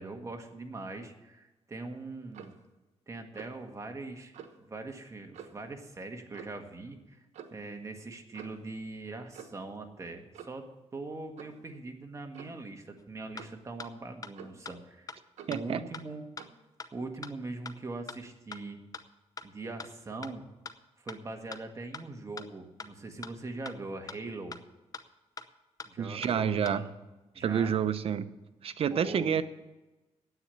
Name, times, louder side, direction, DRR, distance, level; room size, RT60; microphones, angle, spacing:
voice 1, 0.0-2.6 3.1-7.2 7.5-10.6 10.9-15.1 15.5-16.2 16.9-18.8 19.4-20.4 21.0-24.5 25.8-26.9 27.3-27.7 28.9-29.4, right 3 dB, 25° right, 4 dB, 1.6 m, -42 dB
Clock, 2.3-2.6 3.3-3.6 4.3-4.6 5.3-5.7 6.3-6.6 7.3-7.6 8.3-8.7 9.3-9.7 10.3-10.7 11.4-11.6 12.3-12.6 13.4-13.6 14.3-14.7 15.4-15.6 16.4-16.6, right 8 dB, 85° right, 1.2 m, -49 dB
sound 1, 13.0-13.1 13.4-13.5 13.8-13.9 14.2-14.3 14.7-14.8 15.1-15.2 15.5-15.6 15.9-16.0 16.4-16.5 16.8-16.9 17.2-17.3 17.7-17.8 18.1-18.2 18.5-18.6 18.9-19.0 19.4-19.5 19.8-19.9 20.2-20.3 20.7-20.8 21.1-21.2 21.5-21.6 21.9-22.0 22.4-22.5 22.8-22.9 23.2-23.3 23.7-23.8 24.1-24.2 24.5-24.6 24.9-25.0 25.4-25.5 25.8-25.9 26.2-26.3 26.7-26.8, left 4 dB, 30° left, 0.7 m, -41 dB
voice 2, 15.5-15.8 26.0-26.8 27.4-28.3 28.6-29.4, right 8 dB, 55° right, 12 dB, 0.7 m, -28 dB
9.8 x 8.4 x 8.4 m, 1.1 s
cardioid pair, 115°, 12 cm